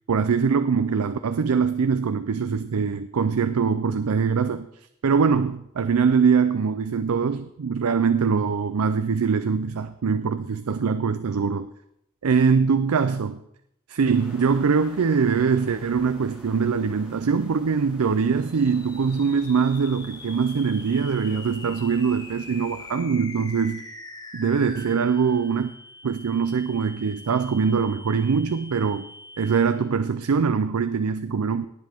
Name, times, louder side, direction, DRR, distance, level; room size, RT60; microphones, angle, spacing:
voice 1, 0.1-4.7 5.0-11.7 12.2-13.4 13.9-23.8 24.3-25.7 26.0-29.1 29.4-31.7, right 5 dB, 85° right, 11 dB, 0.5 m, -23 dB
sound 1, 14.1-23.0, equal, 5° right, 4.5 m, -49 dB
sound 2, 18.5-29.9, left 2 dB, 20° left, 1.0 m, -43 dB
18.0 x 7.5 x 3.5 m, 0.77 s
head